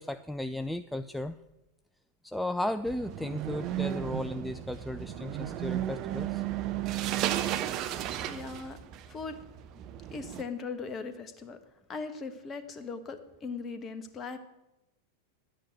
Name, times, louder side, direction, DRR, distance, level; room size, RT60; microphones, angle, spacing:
voice 1, 0.0-1.4 2.2-6.4 8.0-8.4, left 1 dB, 5° left, 10 dB, 0.4 m, -35 dB
sound 1, 2.8-10.4, right 12 dB, 40° right, 0.9 m, -34 dB
voice 2, 8.3-8.8 9.1-9.4 10.1-11.6 11.9-14.4, left 4 dB, 25° left, 10 dB, 1.3 m, -39 dB
10.5 x 9.0 x 8.3 m, 0.97 s
figure-of-eight pair, 90°, 0 cm